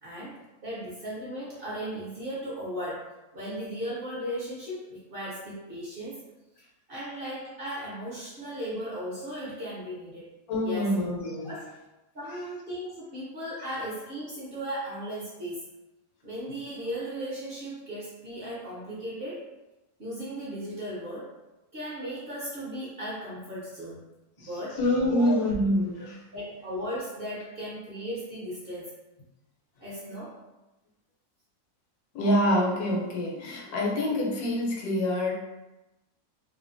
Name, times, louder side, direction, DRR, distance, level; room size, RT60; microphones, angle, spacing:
voice 1, 0.0-6.2 6.9-10.3 10.6-10.9 11.4-11.7 12.1-15.6 16.2-19.5 20.0-21.3 21.7-24.1 24.4-24.8 25.1-25.3 26.3-28.9 29.8-30.4, equal, 50° right, -8 dB, 0.7 m, -36 dB
voice 2, 10.5-11.5 24.4-24.5 24.8-26.2 32.1-35.3, left 1 dB, 90° left, -1 dB, 1.2 m, -26 dB
2.7 x 2.2 x 2.5 m, 1.0 s
omnidirectional pair, 1.6 m